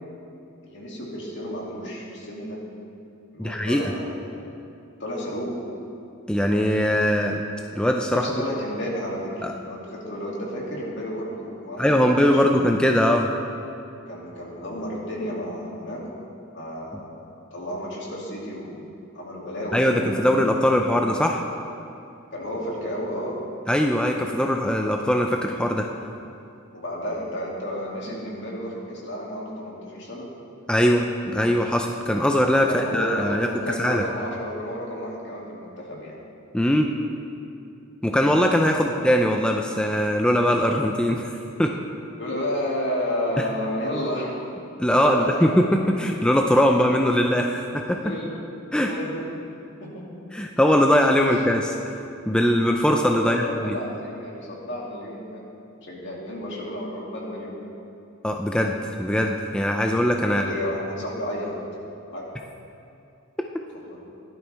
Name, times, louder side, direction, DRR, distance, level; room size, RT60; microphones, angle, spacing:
voice 1, 0.6-2.6 3.3-4.5 5.0-5.6 8.1-12.6 14.1-16.1 16.4-18.9 19.1-21.0 22.3-23.4 26.7-30.3 32.6-36.2 38.7-38.9 42.2-44.4 44.8-45.5 47.8-48.4 48.8-49.3 49.8-50.0 51.2-51.3 53.2-55.4 55.8-57.7 60.3-61.6 62.1-62.3 63.7-64.0, equal, 60° left, -3 dB, 2.6 m, -32 dB
voice 2, 3.4-3.9 6.3-7.4 7.8-8.3 9.4-9.5 11.8-13.3 19.7-21.4 23.7-25.9 30.7-33.5 33.8-34.0 36.5-36.9 38.0-41.3 41.6-41.7 44.8-48.0 48.7-48.9 50.3-51.9 52.3-53.8 58.2-60.5, equal, 5° left, 2 dB, 0.5 m, -21 dB
17.0 x 12.0 x 3.5 m, 2.6 s
head